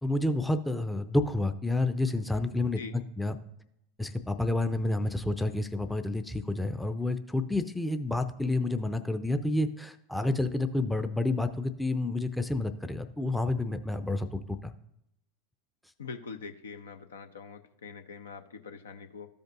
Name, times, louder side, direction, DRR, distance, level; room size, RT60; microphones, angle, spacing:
voice 1, 0.0-3.4 4.0-14.7, left 2 dB, 5° left, 8 dB, 0.5 m, -29 dB
voice 2, 16.0-19.3, left 5 dB, 75° left, 8 dB, 0.6 m, -43 dB
13.5 x 5.2 x 2.5 m, 0.79 s
figure-of-eight pair, 85°, 0 cm